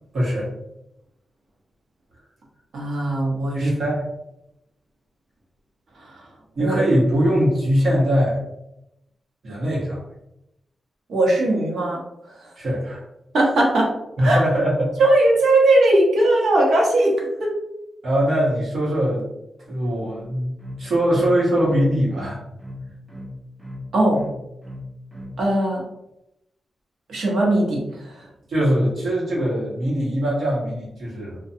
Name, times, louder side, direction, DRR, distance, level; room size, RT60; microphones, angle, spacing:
voice 1, 0.1-0.5 3.5-4.1 6.6-8.4 9.4-10.0 12.6-13.0 14.2-14.9 18.0-19.3 19.7-20.5 20.8-22.4 28.5-31.4, equal, 65° right, -6 dB, 1.1 m, -21 dB
voice 2, 2.7-3.7 6.6-6.8 11.1-12.0 13.3-13.9 14.2-14.4 15.0-17.1 17.4-17.5 23.9-24.2 25.4-25.8 27.1-28.1, right 1 dB, 80° right, -2 dB, 0.8 m, -19 dB
sound 1, 20.3-25.4, left 1 dB, 10° right, 0.5 m, -37 dB
2.5 x 2.2 x 2.7 m, 0.86 s
wide cardioid pair, 140°, 0 cm